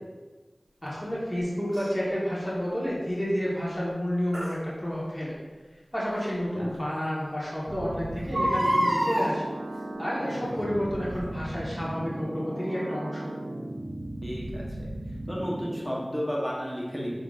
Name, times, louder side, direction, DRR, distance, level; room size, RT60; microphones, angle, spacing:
voice 1, 0.8-5.4 5.9-9.5 10.0-13.3, equal, 15° left, -8 dB, 1.4 m, -30 dB
Crying sobbing, 1.7-1.9 4.3-4.5 6.1-6.2 6.7-6.8 7.1-7.2 8.2-9.3 10.2-10.6 11.1-11.2, equal, 85° right, 1.0 m, -26 dB
sound 1, 7.7-15.8, right 1 dB, 70° right, 0.5 m, -36 dB
voice 2, 14.2-14.9 15.3-17.1, equal, ahead, -5 dB, 1.1 m, -32 dB
5.6 x 3.7 x 2.5 m, 1.3 s
wide cardioid pair, 45°, 0 cm